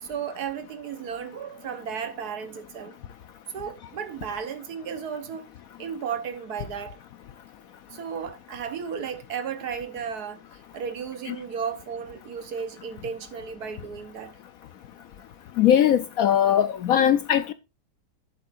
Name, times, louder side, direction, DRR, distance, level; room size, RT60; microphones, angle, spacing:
voice 1, 0.0-2.9 3.5-5.5 5.8-7.0 7.9-10.4 10.7-14.3, right 7 dB, 65° right, 1.5 m, -34 dB
voice 2, 15.6-17.5, left 10 dB, 70° left, 0.9 m, -20 dB
11.5 x 7.5 x 2.5 m
omnidirectional pair, 1.9 m